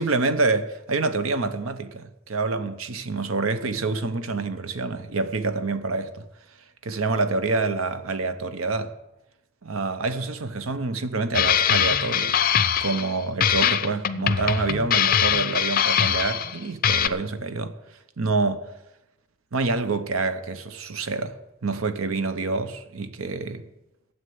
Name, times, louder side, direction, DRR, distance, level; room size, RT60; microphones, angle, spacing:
voice 1, 0.0-6.2 6.8-8.9 9.6-12.4 12.8-17.8 18.2-18.7 19.5-21.4 21.6-23.7, right 3 dB, 80° right, 0.9 m, -27 dB
sound 1, 11.3-13.1 13.4-16.6 16.8-17.1, left 8 dB, 45° left, 0.5 m, -22 dB
9.7 x 8.0 x 9.5 m
head